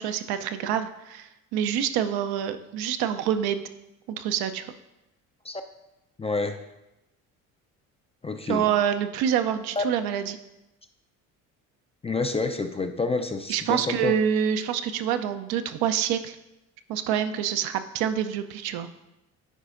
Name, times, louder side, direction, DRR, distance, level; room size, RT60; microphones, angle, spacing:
voice 1, 0.0-3.6 4.1-4.7 8.5-10.4 13.5-16.4 16.9-18.9, right 9 dB, 60° right, 9 dB, 0.6 m, -26 dB
voice 2, 6.2-6.6 8.2-8.7 9.8-9.9 12.0-14.2, left 3 dB, 15° left, 7 dB, 0.4 m, -28 dB
9.9 x 4.8 x 2.5 m, 0.95 s
hypercardioid pair, 60°, 42 cm